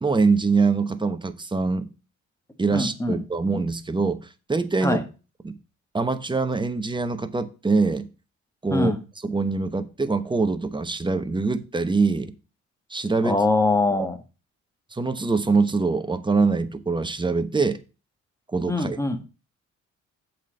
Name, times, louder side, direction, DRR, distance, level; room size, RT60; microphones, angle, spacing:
voice 1, 0.0-1.9 2.6-5.0 5.4-5.6 5.9-8.1 8.6-8.9 9.2-12.3 12.9-13.4 13.9-14.1 14.9-17.8 18.5-19.0, right 4 dB, 15° right, 1.0 m, -24 dB
voice 2, 2.7-3.2 4.8-5.0 8.7-9.0 13.2-14.2 18.7-19.2, left 2 dB, 10° left, 1.6 m, -23 dB
7.3 x 4.4 x 6.5 m
cardioid pair, 90°, 30 cm